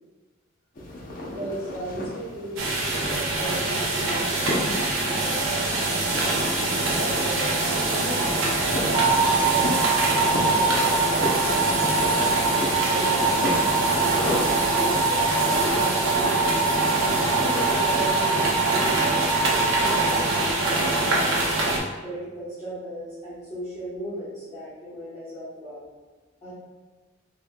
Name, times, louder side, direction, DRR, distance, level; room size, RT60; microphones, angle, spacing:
sound 1, 0.8-14.6, left 1 dB, 45° left, 0.6 m, -34 dB
voice 1, 1.2-5.4 6.3-8.9 9.4-12.5 12.9-16.5 16.9-21.6 22.0-25.8 26.4-26.5, equal, 20° left, -15 dB, 1.0 m, -37 dB
sound 2, 2.6-21.8, right 2 dB, 85° right, 0.6 m, -24 dB
sound 3, 8.9-21.1, right 4 dB, 30° right, 0.3 m, -26 dB
4.1 x 2.8 x 2.2 m, 1.3 s
head